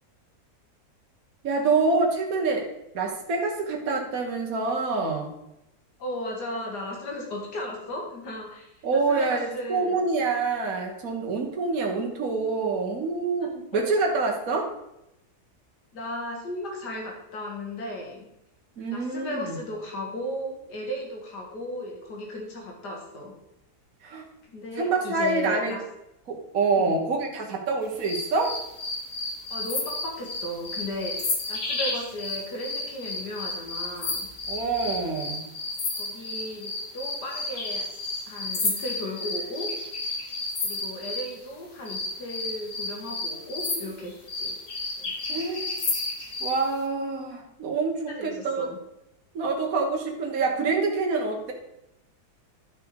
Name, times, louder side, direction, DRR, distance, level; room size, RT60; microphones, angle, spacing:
voice 1, 1.4-2.7 2.9-5.3 8.8-14.7 18.8-19.6 24.0-24.3 24.8-25.8 26.3-28.6 34.5-35.4 45.3-45.7 46.4-48.7 49.3-51.5, right 4 dB, 60° right, 1 dB, 1.8 m, -26 dB
voice 2, 6.0-10.0 13.4-13.8 15.9-18.3 18.9-23.3 24.5-25.8 26.8-27.0 29.5-34.3 36.0-37.8 38.3-39.7 40.6-44.6 45.0-45.1 48.1-48.8, left 1 dB, 80° left, 0 dB, 2.5 m, -35 dB
sound 1, 28.0-41.3 41.8-46.6, left 3 dB, 55° left, 1.9 m, -32 dB
12.0 x 6.0 x 4.8 m, 0.86 s
omnidirectional pair, 1.7 m